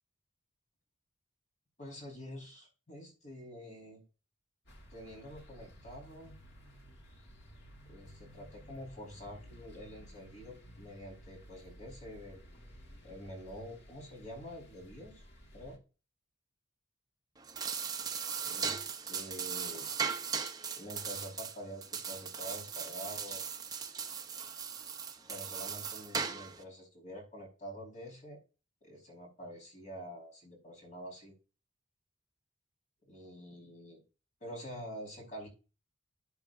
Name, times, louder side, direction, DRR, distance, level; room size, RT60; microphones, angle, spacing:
voice 1, 1.8-4.0 4.9-6.3 7.8-12.6 13.0-15.2 15.5-15.8 18.4-19.9 20.8-23.4 25.3-28.4 28.8-31.3 33.0-34.0 34.4-35.5, equal, 35° left, 1 dB, 4.8 m, -47 dB
sound 1, 4.6-15.8, equal, 55° left, 2.0 m, -55 dB
sound 2, 17.4-26.6, right 6 dB, 20° right, 0.8 m, -38 dB
13.0 x 8.0 x 2.7 m, 0.32 s
head